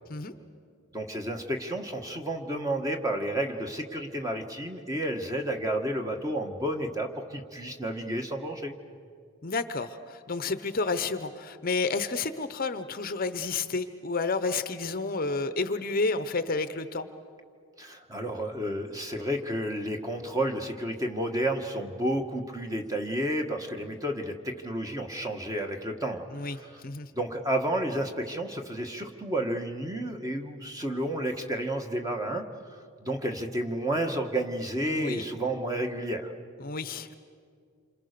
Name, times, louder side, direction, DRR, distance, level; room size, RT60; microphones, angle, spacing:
voice 1, 0.9-8.7 17.8-26.8 27.1-36.3, right 1 dB, 15° right, 4 dB, 1.6 m, -31 dB
voice 2, 9.4-17.1 26.3-27.1 34.9-35.3 36.6-37.1, left 3 dB, 40° left, 11 dB, 0.8 m, -30 dB
28.0 x 26.0 x 6.8 m, 2.2 s
head